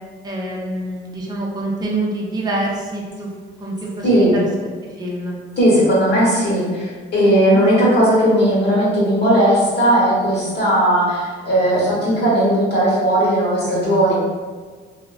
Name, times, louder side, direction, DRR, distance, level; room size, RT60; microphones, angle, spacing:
voice 1, 0.2-3.3 3.6-4.5 4.8-5.4 7.2-7.6, right 2 dB, 20° right, -2 dB, 0.5 m, -26 dB
voice 2, 4.0-4.3 5.6-14.2, right 1 dB, 60° left, -7 dB, 1.1 m, -16 dB
3.4 x 2.1 x 2.4 m, 1.5 s
cardioid pair, 90°, 20 cm